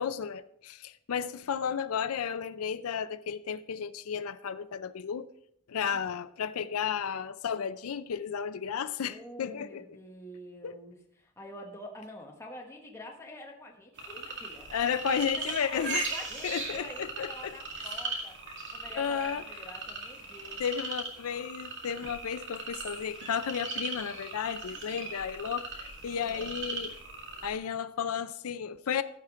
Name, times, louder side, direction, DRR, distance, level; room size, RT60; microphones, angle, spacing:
voice 1, 0.0-5.3 5.7-9.8 10.6-10.7 14.7-16.1 16.4-17.5 19.0-19.4 20.6-27.0 27.4-29.0, left 7 dB, 75° left, 12 dB, 0.5 m, -33 dB
voice 2, 9.0-14.7 15.1-18.4 18.7-20.6 24.7-25.1 26.2-26.6, left 1 dB, 10° left, 0 dB, 1.1 m, -47 dB
sound 1, 14.0-27.5, right 3 dB, 55° right, 2.2 m, -39 dB
15.0 x 5.8 x 4.8 m, 0.73 s
head